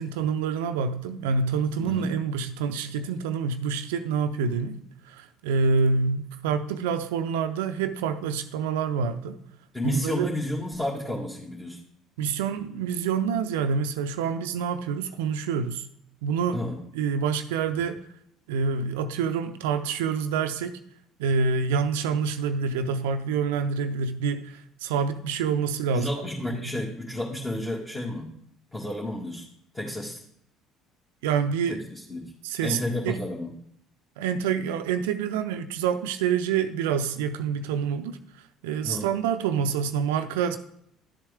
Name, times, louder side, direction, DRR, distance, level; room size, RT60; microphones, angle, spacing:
voice 1, 0.0-9.4 9.8-10.4 12.2-15.9 16.2-16.6 16.9-18.0 18.5-20.8 21.2-26.1 26.6-26.8 31.2-31.8 32.4-32.8 33.0-33.2 34.2-40.6, right 6 dB, 80° right, 0.5 m, -27 dB
voice 2, 9.7-11.8 16.5-16.8 25.9-28.3 28.7-29.4 29.7-30.2 31.7-32.3 32.6-33.5 38.8-39.1, left 1 dB, 15° left, 1.9 m, -31 dB
12.0 x 7.3 x 3.5 m
hypercardioid pair, 60°, 0 cm